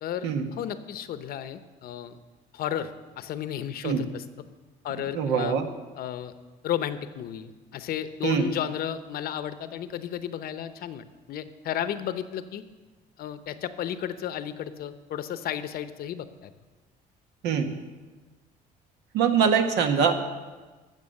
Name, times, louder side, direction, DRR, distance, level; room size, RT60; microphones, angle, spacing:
voice 1, 0.0-2.2 2.5-4.3 4.8-5.6 6.0-6.3 6.6-12.6 13.2-16.5, left 10 dB, 65° left, 12 dB, 0.8 m, -33 dB
voice 2, 5.1-5.7 8.2-8.4 17.4-17.7 19.1-20.1, right 7 dB, 85° right, 6 dB, 1.3 m, -23 dB
13.0 x 7.5 x 6.5 m, 1.3 s
cardioid pair, 110°, 17 cm